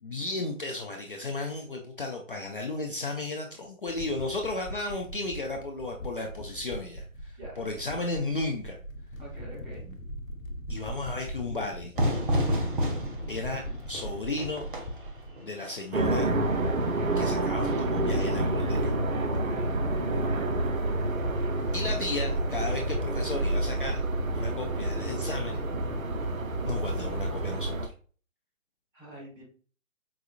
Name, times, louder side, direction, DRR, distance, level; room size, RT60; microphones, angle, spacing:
voice 1, 0.0-8.8 10.7-11.9 13.3-14.7 15.4-16.3 17.2-18.9 21.7-24.0 24.3-25.7 26.6-27.8, left 2 dB, 40° left, 1 dB, 0.4 m, -34 dB
sound 1, 3.9-15.3, equal, 70° left, 0.7 m, -41 dB
voice 2, 9.2-10.0 19.3-19.8 28.9-29.4, right 1 dB, 10° right, -5 dB, 1.1 m, -44 dB
Fire / Fireworks, 12.0-17.5, equal, 40° right, 0.8 m, -31 dB
sound 2, 15.9-27.9, right 2 dB, 75° right, 0.7 m, -28 dB
4.8 x 2.4 x 2.4 m, 0.42 s
figure-of-eight pair, 140°, 41 cm